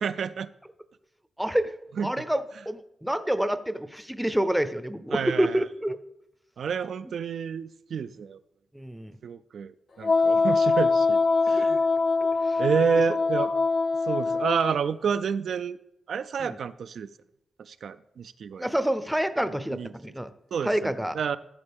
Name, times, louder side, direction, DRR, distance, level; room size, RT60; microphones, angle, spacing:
voice 1, 0.0-0.5 2.0-2.3 5.1-5.6 6.6-8.4 9.2-11.2 11.5-11.8 12.6-13.6 14.1-15.8 16.1-17.1 17.7-18.7 19.7-19.9 20.5-21.4, right 7 dB, 70° right, 12 dB, 0.3 m, -29 dB
voice 2, 1.4-1.7 2.0-6.0 8.7-9.2 11.6-11.7 12.4-12.6 16.4-16.6 18.6-20.3 20.6-21.2, right 1 dB, 5° right, 12 dB, 0.6 m, -28 dB
Wind instrument woodwind instrument, 10.0-14.8, left 4 dB, 45° left, 0.5 m, -23 dB
14.0 x 7.4 x 3.5 m, 0.83 s
wide cardioid pair, 110°, 0 cm